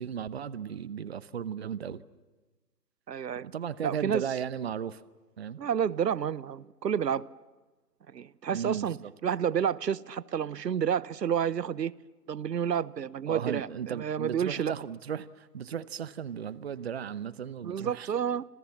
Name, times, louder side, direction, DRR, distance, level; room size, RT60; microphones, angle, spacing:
voice 1, 0.0-2.0 3.4-5.0 5.4-5.6 8.5-9.1 13.3-18.1, right 8 dB, 40° right, 17 dB, 0.9 m, -36 dB
voice 2, 3.1-3.5 3.8-4.2 5.6-7.3 8.1-11.9 12.3-14.7 17.6-18.5, right 8 dB, 80° right, 21 dB, 0.9 m, -30 dB
29.5 x 27.0 x 7.2 m, 1.2 s
hypercardioid pair, 155°, 49 cm